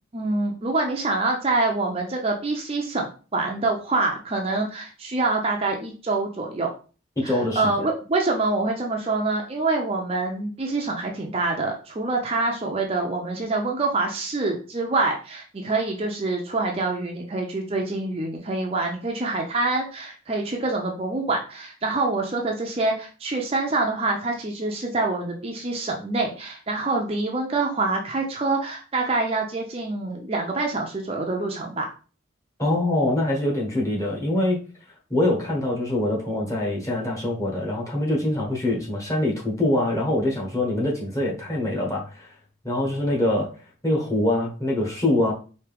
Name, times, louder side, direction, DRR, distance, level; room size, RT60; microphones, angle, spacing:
voice 1, 0.1-6.7 7.2-31.9, right 3 dB, 30° right, 1 dB, 0.5 m, -26 dB
voice 2, 7.2-7.8 32.6-34.6 35.1-42.3 42.6-43.5 43.8-45.3, left 1 dB, 15° left, -3 dB, 1.2 m, -24 dB
4.5 x 2.8 x 3.4 m, 0.36 s
head